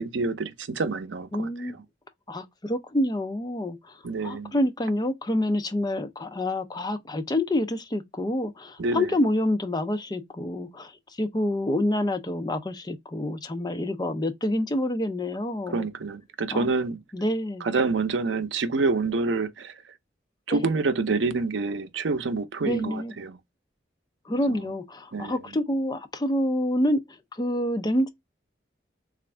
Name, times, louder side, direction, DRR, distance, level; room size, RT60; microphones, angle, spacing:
voice 1, 0.0-1.8 4.0-4.6 8.8-9.1 15.7-17.0 17.6-19.9 20.5-23.4 24.5-24.7 25.1-25.6, right 3 dB, 80° right, 0.5 m, -27 dB
voice 2, 1.3-1.8 2.3-4.0 4.2-10.9 11.2-15.9 16.5-16.7 17.1-17.7 20.5-20.6 22.6-23.1 24.3-27.0 27.3-28.1, left 1 dB, 20° left, 0.5 m, -27 dB
3.4 x 2.4 x 3.2 m
head